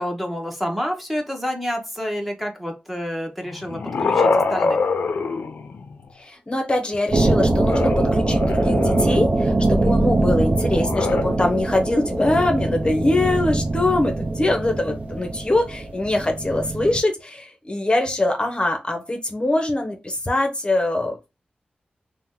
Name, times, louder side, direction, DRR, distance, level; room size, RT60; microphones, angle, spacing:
voice 1, 0.0-4.8, equal, 5° right, 2 dB, 0.8 m, -28 dB
sound 1, 3.5-6.1 7.6-9.3 10.7-11.2, left 4 dB, 80° left, 0.4 m, -24 dB
voice 2, 6.2-21.2, left 2 dB, 30° left, 4 dB, 0.7 m, -23 dB
sound 2, 7.1-17.0, right 2 dB, 55° right, 0.6 m, -22 dB
2.8 x 2.1 x 3.6 m, 0.26 s
cardioid pair, 60°, 3 cm